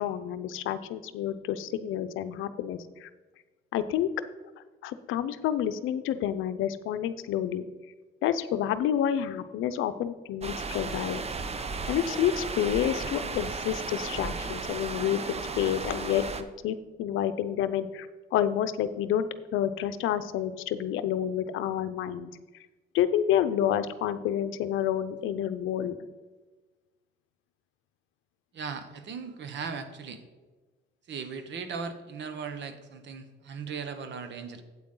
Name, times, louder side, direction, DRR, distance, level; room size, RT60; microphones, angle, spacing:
voice 1, 0.0-3.1 3.7-4.1 4.8-7.7 8.2-11.2 11.9-19.3 19.5-22.3 22.9-25.9, left 10 dB, 85° left, 12 dB, 0.6 m, -29 dB
sound 1, 10.4-16.4, right 4 dB, 30° right, 0.8 m, -35 dB
voice 2, 28.5-30.2 31.1-34.6, right 5 dB, 65° right, 9 dB, 1.2 m, -38 dB
8.7 x 8.3 x 3.8 m, 1.3 s
cardioid pair, 90°, 20 cm